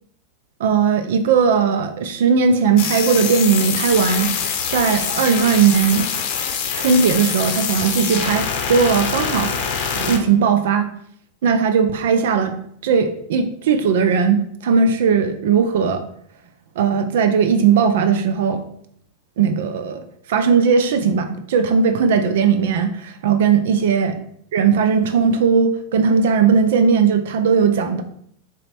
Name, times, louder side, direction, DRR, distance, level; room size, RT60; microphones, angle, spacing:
voice 1, 0.6-4.3 4.7-6.1 6.7-10.9 11.4-12.5 12.8-16.0 16.8-18.6 19.4-20.0 20.3-24.2 24.5-28.0, right 6 dB, 70° right, 8 dB, 0.3 m, -18 dB
sound 1, 2.8-10.2, left 7 dB, 55° left, 0.7 m, -24 dB
4.0 x 2.1 x 4.2 m, 0.69 s
hypercardioid pair, 100°, 0 cm